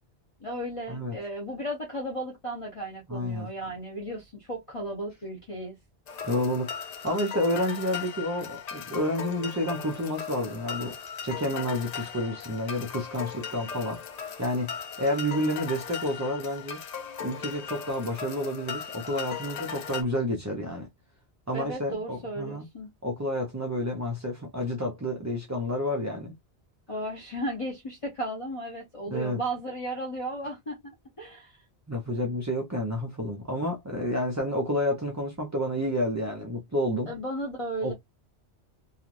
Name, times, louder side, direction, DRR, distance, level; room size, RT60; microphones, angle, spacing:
voice 1, 0.4-5.7 21.5-22.9 26.9-30.8 31.2-31.6 37.1-37.9, right 1 dB, 30° left, 0.8 m, -35 dB
voice 2, 3.1-3.5 6.2-6.7 7.0-10.9 11.2-14.0 14.4-16.8 17.2-20.9 21.5-22.6 23.0-26.3 29.1-29.4 31.9-37.1 37.8-37.9, equal, 25° right, 0.4 m, -30 dB
sound 1, 6.1-20.0, left 7 dB, 60° left, 0.4 m, -38 dB
3.0 x 2.4 x 2.4 m
omnidirectional pair, 1.2 m